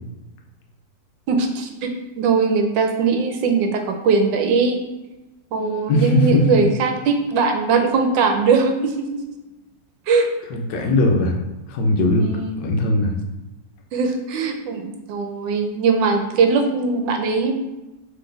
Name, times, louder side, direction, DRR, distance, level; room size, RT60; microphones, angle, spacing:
voice 1, 1.3-4.8 5.5-9.2 10.1-10.3 12.2-12.6 13.9-17.5, right 4 dB, 80° right, 4 dB, 1.2 m, -20 dB
voice 2, 5.9-6.5 10.5-11.3 11.7-12.3 12.6-13.1, left 1 dB, 75° left, 1 dB, 1.3 m, -19 dB
3.9 x 3.3 x 3.8 m, 1.0 s
omnidirectional pair, 2.0 m